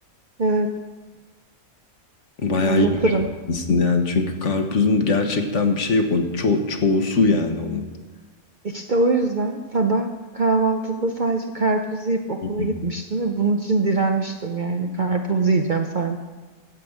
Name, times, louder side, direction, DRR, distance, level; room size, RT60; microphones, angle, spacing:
voice 1, 0.4-0.7 2.6-3.3 8.6-16.2, right 3 dB, 45° right, 4 dB, 0.7 m, -22 dB
voice 2, 2.4-2.9 3.5-7.8 12.4-12.7, left 3 dB, 55° left, 5 dB, 1.4 m, -21 dB
15.0 x 5.2 x 8.2 m, 1.4 s
omnidirectional pair, 1.5 m